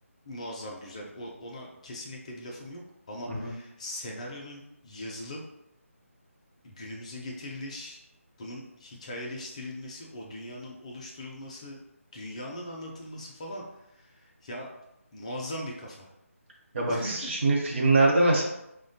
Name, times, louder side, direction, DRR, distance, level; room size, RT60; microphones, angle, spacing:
voice 1, 0.3-5.5 6.6-8.0 8.4-11.8 12.1-14.7 15.1-16.1 16.9-17.3, left 1 dB, 25° left, -1 dB, 0.4 m, -40 dB
voice 2, 16.7-18.4, right 2 dB, 55° right, -2 dB, 0.8 m, -23 dB
3.0 x 2.1 x 2.7 m, 0.84 s
figure-of-eight pair, 160°, 8 cm